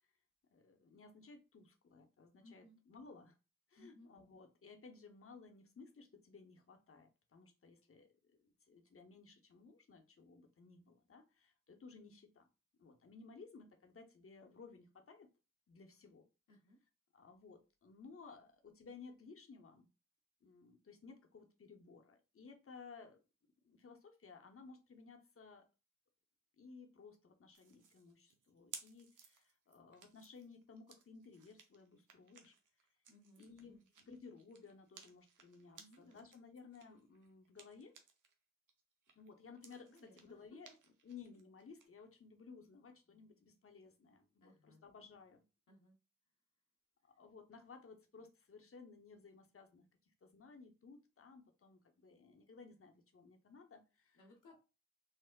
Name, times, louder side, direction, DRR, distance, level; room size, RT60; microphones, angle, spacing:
voice 1, 0.5-3.4 3.7-8.1 8.4-12.5 12.8-15.3 15.7-16.2 17.1-19.9 20.4-23.2 23.6-25.6 26.6-32.5 33.4-33.8 34.1-37.9 39.2-40.7 41.0-45.4 47.0-49.9 50.2-54.2, left 4 dB, 45° left, 0.7 m, -58 dB
voice 2, 2.4-2.8 3.8-4.1 16.5-16.8 33.1-33.8 35.8-36.3 39.9-40.6 44.4-44.8 45.7-46.0 54.1-54.6, left 1 dB, 85° left, 0.8 m, -63 dB
sound 1, 27.5-38.3 38.7-41.9, right 6 dB, 90° right, 0.5 m, -60 dB
3.4 x 2.0 x 2.2 m
cardioid pair, 40°, 30 cm